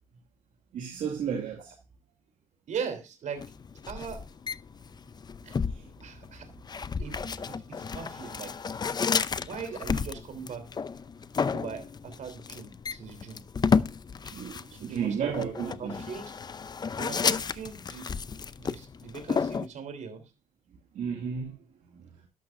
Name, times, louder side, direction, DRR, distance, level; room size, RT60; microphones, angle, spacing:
voice 1, 0.7-1.7 5.6-5.9 14.2-16.0 20.9-22.3, right 7 dB, 90° right, 2.2 m, -34 dB
voice 2, 2.7-3.4 3.9-4.2 5.4-5.6 6.0-6.5 7.0-7.2 7.5-8.5 9.4-10.7 11.5-13.4 14.7-15.3 15.6-16.3 16.9-18.0 18.6-20.2, right 6 dB, 70° right, 3.3 m, -39 dB
sound 1, 3.4-19.7, left 5 dB, 35° left, 0.5 m, -32 dB
12.0 x 12.0 x 2.5 m
cardioid pair, 105°, 13 cm